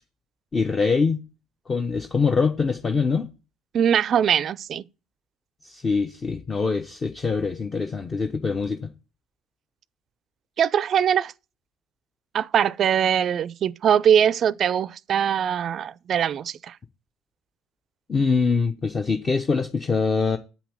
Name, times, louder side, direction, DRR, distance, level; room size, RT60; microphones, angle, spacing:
voice 1, 0.5-1.2 1.7-3.3 5.6-8.9 18.1-20.4, left 4 dB, 30° left, 0.8 m, -24 dB
voice 2, 3.7-4.8 10.6-11.3 12.3-16.8, right 8 dB, 50° right, 0.4 m, -22 dB
8.1 x 5.8 x 7.3 m
hypercardioid pair, 60°, 0 cm